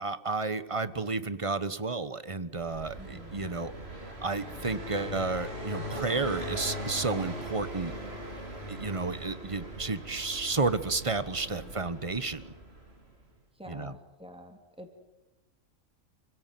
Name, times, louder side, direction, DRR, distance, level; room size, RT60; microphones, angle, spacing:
voice 1, 0.0-3.7 4.2-7.9 8.7-12.5 13.7-13.9, right 3 dB, 25° right, 13 dB, 1.1 m, -32 dB
Car passing by, 2.6-13.2, right 1 dB, 50° right, 3.8 m, -40 dB
voice 2, 3.0-3.5 11.5-11.7 13.6-15.0, equal, 5° right, 4 dB, 3.3 m, -48 dB
28.0 x 17.0 x 9.4 m, 0.99 s
omnidirectional pair, 1.4 m